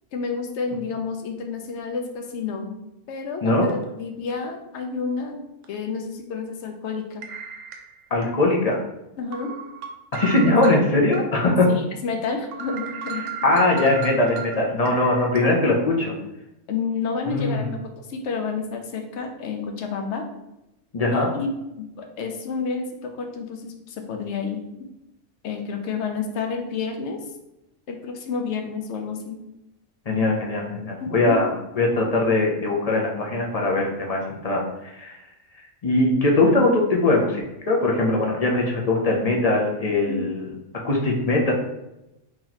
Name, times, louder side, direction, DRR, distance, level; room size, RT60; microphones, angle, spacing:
voice 1, 0.1-2.8 3.1-5.4 5.7-7.2 9.2-9.6 10.5-10.8 11.7-13.6 16.7-17.6 18.0-20.3 21.1-21.5 21.8-24.6 25.4-27.2 27.9-29.4 31.0-31.4 40.1-40.3, left 5 dB, 65° left, 4 dB, 0.8 m, -30 dB
sound 1, 3.7-3.8 4.3-4.4 5.6-5.8 7.2-8.3 8.7-8.8 9.3-11.2 11.6-11.7 12.1-12.2 12.5-15.4, right 7 dB, 70° right, 0.9 m, -35 dB
voice 2, 8.1-8.8 10.1-11.7 13.4-16.1 17.3-17.8 20.9-21.3 30.1-35.2 35.8-37.4 37.7-40.5 40.8-41.5, left 2 dB, 45° left, -1 dB, 0.5 m, -21 dB
3.0 x 2.9 x 3.9 m, 0.92 s
omnidirectional pair, 1.3 m